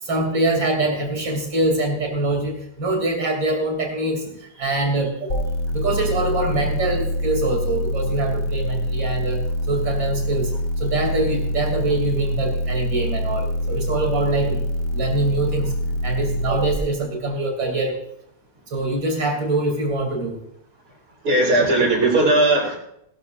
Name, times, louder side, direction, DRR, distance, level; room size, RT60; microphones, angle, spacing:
voice 1, 0.0-5.4 5.7-9.4 9.7-10.5 10.8-14.6 14.9-15.7 16.0-18.0 18.7-20.4, right 2 dB, 85° right, 2 dB, 3.9 m, -24 dB
sound 1, 5.3-16.8, left 1 dB, 75° left, 1.8 m, -25 dB
voice 2, 21.2-22.8, right 2 dB, 60° right, -1 dB, 4.9 m, -17 dB
20.0 x 13.0 x 2.6 m, 0.74 s
omnidirectional pair, 2.0 m